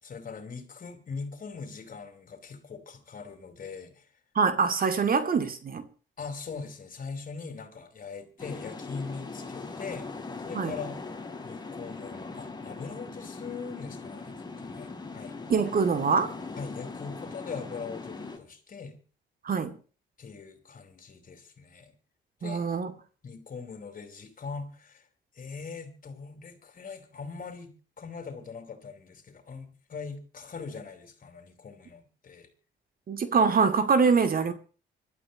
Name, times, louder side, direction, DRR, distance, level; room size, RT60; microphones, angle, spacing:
voice 1, 0.0-4.0 6.2-10.1 10.4-11.0 11.4-14.3 14.6-15.4 16.6-19.0 20.2-21.9 22.4-22.6 23.2-25.1 25.3-32.5, left 5 dB, 45° left, 4.8 m, -41 dB
voice 2, 4.4-5.8 10.5-10.7 15.5-16.3 19.4-19.8 22.4-22.9 33.1-34.5, right 5 dB, 45° right, 2.4 m, -24 dB
sound 1, 8.4-18.4, left 3 dB, 20° left, 3.8 m, -40 dB
25.0 x 13.0 x 3.0 m
cardioid pair, 90°, 20 cm